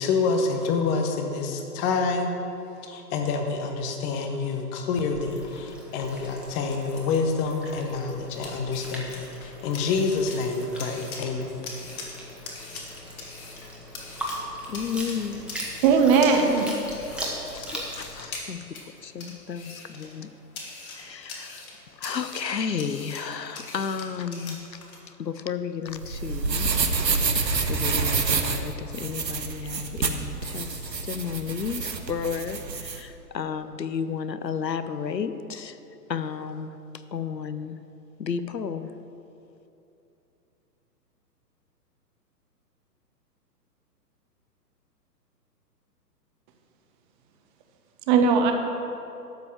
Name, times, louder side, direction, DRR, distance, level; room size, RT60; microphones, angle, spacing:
voice 1, 0.0-2.3 2.8-11.5, left 4 dB, 15° left, 4 dB, 0.6 m, -27 dB
sound 1, 5.1-18.2, equal, ahead, 1.3 m, -39 dB
sound 2, 6.4-25.0, left 3 dB, 60° left, 2.6 m, -43 dB
voice 2, 14.7-15.4 17.2-18.6 19.0-20.3 20.9-21.7 22.0-24.6 25.1-26.7 27.1-27.2 27.7-35.8 36.1-36.7 37.1-37.8 38.2-38.9, left 6 dB, 90° left, 11 dB, 0.8 m, -32 dB
voice 3, 15.8-16.7 48.1-48.5, right 5 dB, 30° right, 5 dB, 1.1 m, -18 dB
sound 3, 25.9-33.0, right 4 dB, 85° right, 1.2 m, -27 dB
12.5 x 5.4 x 7.4 m, 2.8 s
figure-of-eight pair, 120°, 49 cm